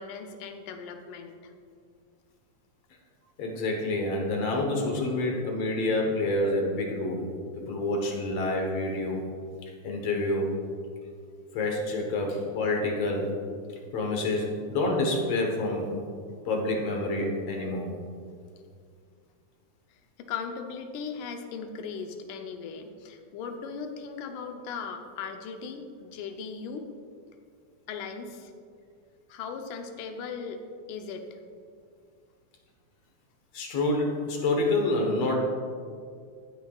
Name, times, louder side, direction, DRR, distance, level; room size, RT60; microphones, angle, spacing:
voice 1, 0.0-1.5 20.2-26.9 27.9-28.5 29.3-30.6 30.9-31.4, left 5 dB, 85° left, 5 dB, 2.3 m, -38 dB
voice 2, 3.4-7.3 7.6-9.2 9.8-10.6 11.5-13.3 13.9-15.9 16.5-17.9 33.5-35.4, left 2 dB, 60° left, 1 dB, 2.1 m, -28 dB
15.0 x 9.1 x 2.4 m, 2.2 s
omnidirectional pair, 3.5 m